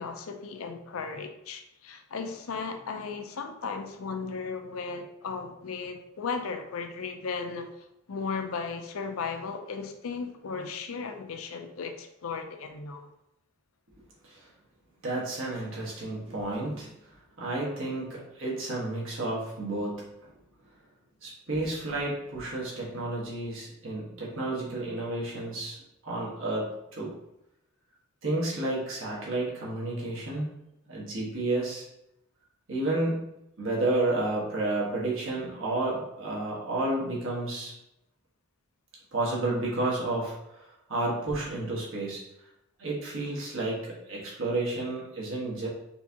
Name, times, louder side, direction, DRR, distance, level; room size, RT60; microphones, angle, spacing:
voice 1, 0.0-7.7 8.1-13.1, left 5 dB, 80° left, 6 dB, 0.5 m, -36 dB
voice 2, 15.0-16.9 17.4-20.1 21.2-25.8 26.0-27.1 28.2-30.5 30.9-31.8 32.7-33.2 33.6-37.7 39.1-42.2 42.8-45.7, right 2 dB, 65° right, -4 dB, 1.4 m, -31 dB
4.4 x 3.5 x 2.8 m, 0.84 s
head